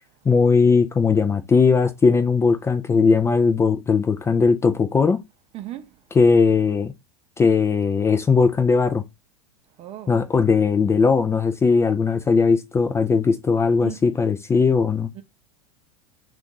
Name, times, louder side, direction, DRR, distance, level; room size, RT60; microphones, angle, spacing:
voice 1, 0.3-5.2 6.1-6.9 7.4-9.0 10.1-15.1, left 5 dB, 15° left, 0.4 m, -19 dB
voice 2, 5.5-5.9 9.8-10.2 13.8-14.0 15.1-15.2, right 14 dB, 35° right, 0.6 m, -35 dB
2.5 x 2.4 x 3.8 m
hypercardioid pair, 90°, 17 cm